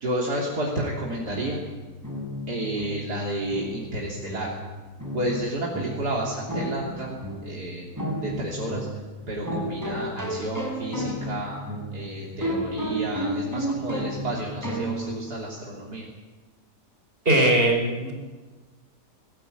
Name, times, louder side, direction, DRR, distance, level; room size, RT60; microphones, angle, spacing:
voice 1, 0.0-1.6 2.5-4.5 5.1-7.9 8.2-8.9 9.3-11.6 11.9-16.1, right 1 dB, 70° right, -3 dB, 3.8 m, -31 dB
sound 1, 1.2-15.3, equal, 10° right, 5.3 m, -33 dB
voice 2, 17.3-18.1, right 1 dB, 35° right, 1 dB, 5.3 m, -20 dB
21.0 x 18.5 x 9.3 m, 1.3 s
omnidirectional pair, 1.8 m